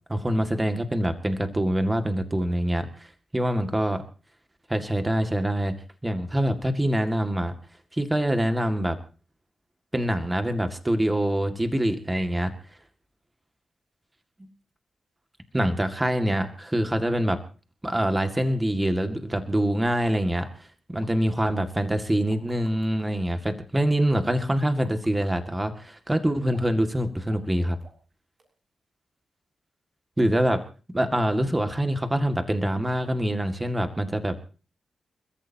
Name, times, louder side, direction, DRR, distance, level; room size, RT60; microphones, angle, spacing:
voice 1, 0.1-3.1 3.3-4.0 4.7-5.8 6.0-7.5 7.9-9.0 9.9-12.5 14.4-14.5 15.5-17.4 17.8-27.8 30.2-30.6 30.9-34.5, right 1 dB, 15° right, 6 dB, 2.1 m, -25 dB
sound 1, 20.4-20.6 21.0-21.1 22.0-23.1 24.3-25.3 26.5-26.8 27.3-27.5 27.8-28.1 28.4-28.5, right 3 dB, 50° right, 6.7 m, -52 dB
29.5 x 14.0 x 2.9 m, 0.36 s
cardioid pair, 85°, 0 cm